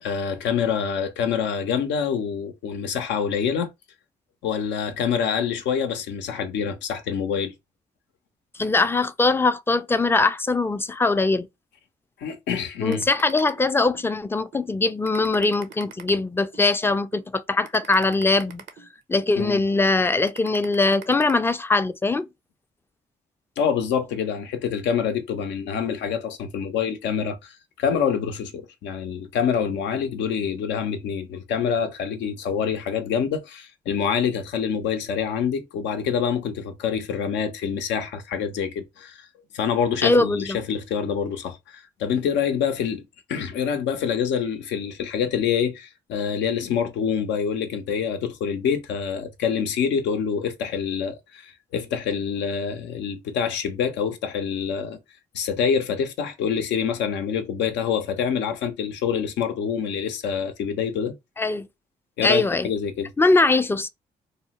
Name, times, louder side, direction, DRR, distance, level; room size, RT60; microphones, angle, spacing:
voice 1, 0.0-3.7 4.4-7.5 12.2-13.0 19.4-19.6 23.6-39.3 39.5-55.0 55.3-61.1 62.2-63.1, left 7 dB, 80° left, 0.5 m, -26 dB
voice 2, 8.6-11.5 12.8-18.6 19.1-22.3 40.0-40.6 61.4-61.7 62.2-62.7 63.2-63.9, left 3 dB, 10° left, 0.3 m, -21 dB
sound 1, 12.9-14.1 14.5-14.7 15.0-16.7 17.1-17.3 17.6-19.3 19.7-19.9 20.3-21.3, right 7 dB, 75° right, 0.5 m, -43 dB
2.8 x 2.1 x 2.8 m
supercardioid pair, 50°, 18 cm